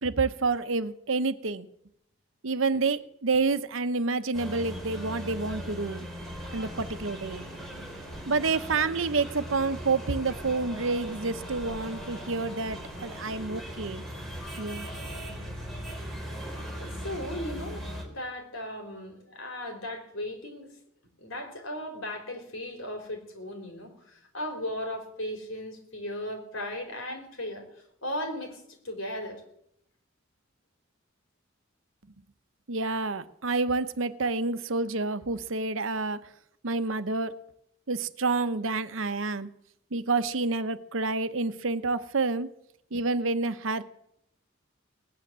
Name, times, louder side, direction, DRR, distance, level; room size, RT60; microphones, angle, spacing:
voice 1, 0.0-1.7 2.4-6.1 6.5-7.4 8.3-14.0 14.6-14.9 32.7-36.2 36.6-37.3 37.9-39.5 39.9-42.5 42.9-43.8, right 3 dB, 85° right, 12 dB, 1.0 m, -28 dB
sound 1, 4.3-18.0, equal, ahead, 3.7 m, -39 dB
voice 2, 16.7-20.7 21.2-27.7 28.0-29.4, left 1 dB, 90° left, 4 dB, 4.1 m, -37 dB
19.0 x 9.5 x 7.5 m, 0.76 s
head